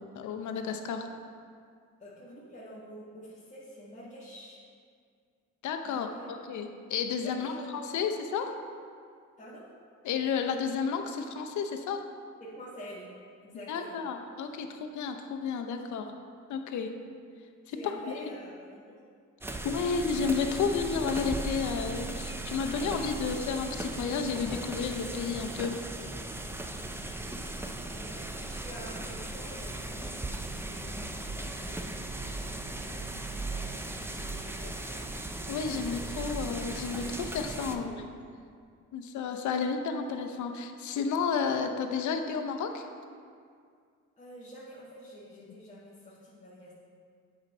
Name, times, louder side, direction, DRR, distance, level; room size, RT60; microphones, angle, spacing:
voice 1, 0.1-1.1 5.6-8.5 10.0-12.0 13.7-16.2 16.5-16.9 17.7-18.2 19.4-25.7 35.5-38.0 38.9-42.9, left 5 dB, 70° left, 6 dB, 0.7 m, -32 dB
voice 2, 2.0-4.6 5.8-6.3 7.2-8.5 9.4-9.6 12.4-13.1 13.4-14.0 17.7-19.0 27.7-30.2 30.7-31.8 32.2-35.1 37.7-38.0 44.2-46.7, equal, 25° left, -9 dB, 1.5 m, -48 dB
sound 1, 19.4-37.8, right 2 dB, 10° right, 0.5 m, -37 dB
7.9 x 4.4 x 5.4 m, 2.2 s
cardioid pair, 90°, 30 cm